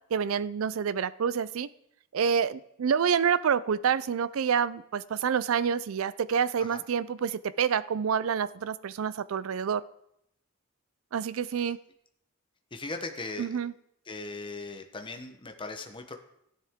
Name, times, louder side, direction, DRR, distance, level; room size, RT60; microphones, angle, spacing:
voice 1, 0.1-1.7 2.1-9.8 11.1-11.8 13.4-13.7, right 7 dB, 70° right, 17 dB, 0.4 m, -28 dB
voice 2, 12.7-13.5 14.1-16.2, left 3 dB, 25° left, 5 dB, 0.9 m, -38 dB
13.5 x 10.0 x 3.6 m, 0.77 s
head